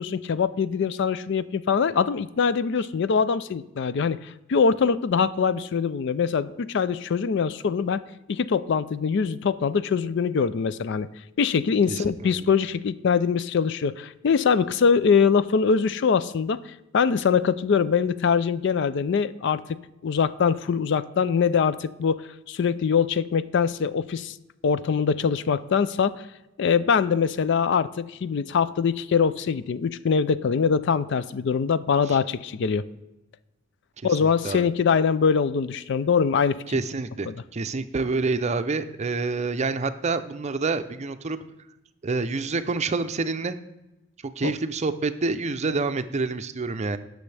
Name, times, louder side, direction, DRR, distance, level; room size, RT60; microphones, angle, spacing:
voice 1, 0.0-8.0 8.3-11.1 11.4-16.6 16.9-19.6 20.0-24.3 24.6-26.2 26.6-32.9 34.0-36.6 37.3-37.4 44.4-44.5, left 6 dB, 65° left, 15 dB, 0.4 m, -23 dB
voice 2, 11.9-12.5 32.1-32.2 34.2-34.7 36.7-41.4 42.0-43.6 44.4-47.0, right 3 dB, 35° right, 11 dB, 0.5 m, -27 dB
17.0 x 6.3 x 3.3 m, 0.95 s
head